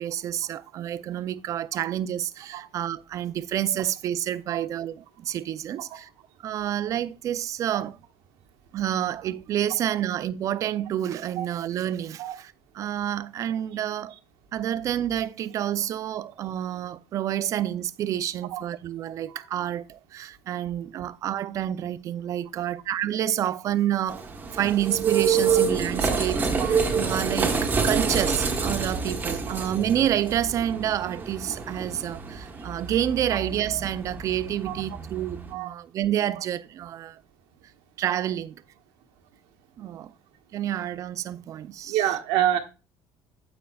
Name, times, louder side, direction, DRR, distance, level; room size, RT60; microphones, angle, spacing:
voice 1, 0.0-6.1 6.4-8.0 8.7-14.1 14.5-24.3 24.5-37.2 38.0-38.6 39.8-40.1 40.5-42.1, right 11 dB, 35° right, 0.4 m, -29 dB
sound 1, 24.1-35.5, right 5 dB, 20° right, 1.0 m, -27 dB
voice 2, 41.9-42.6, right 11 dB, 80° right, 1.2 m, -26 dB
9.3 x 7.8 x 2.3 m
cardioid pair, 165°, 9 cm